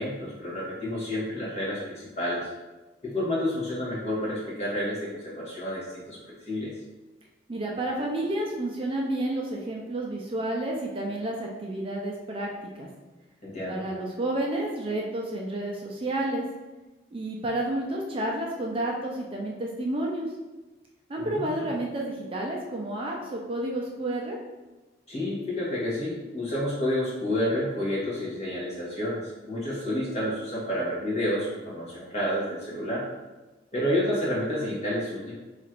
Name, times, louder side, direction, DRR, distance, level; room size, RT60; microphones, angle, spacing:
voice 1, 0.0-2.5 3.0-6.2 6.5-6.7 13.4-13.8 21.2-21.7 25.1-33.0 33.7-35.3, left 1 dB, 35° left, -6 dB, 1.2 m, -30 dB
voice 2, 7.5-12.9 13.7-16.5 17.1-20.3 21.1-24.4, right 1 dB, 30° right, -1 dB, 0.4 m, -30 dB
3.0 x 2.5 x 4.3 m, 1.2 s
head